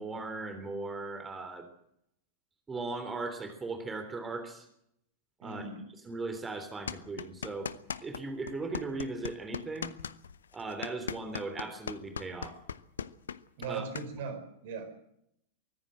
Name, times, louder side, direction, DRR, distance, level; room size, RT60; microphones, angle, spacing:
voice 1, 0.0-1.7 2.7-4.7 5.4-5.6 6.0-7.7 8.0-9.9 10.5-12.6 13.6-13.8, right 3 dB, 15° right, 7 dB, 3.4 m, -38 dB
voice 2, 5.4-5.8 13.6-15.0, right 5 dB, 55° right, 9 dB, 4.6 m, -39 dB
sound 1, 6.9-8.2 8.5-14.1, left 7 dB, 70° left, 0.8 m, -38 dB
24.0 x 15.0 x 7.9 m, 0.75 s
figure-of-eight pair, 90°, 0 cm